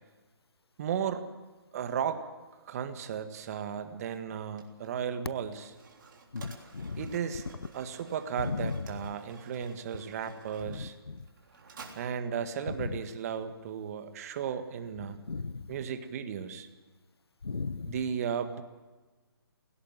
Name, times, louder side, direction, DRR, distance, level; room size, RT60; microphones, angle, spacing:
voice 1, 0.8-1.3 1.7-2.2 2.6-5.7 7.0-7.4 7.7-10.9 11.9-15.2 15.7-16.7 17.9-18.6, right 8 dB, 40° right, 9 dB, 1.7 m, -35 dB
Mechanisms, 4.0-13.7, right 4 dB, 55° right, 3.5 m, -54 dB
voice 2, 6.3-7.1 8.4-8.8 10.6-11.2 12.7-12.9 15.1-15.7 17.4-17.9, left 4 dB, 85° left, 17 dB, 0.9 m, -36 dB
17.5 x 17.0 x 9.2 m, 1.3 s
figure-of-eight pair, 145°, 13 cm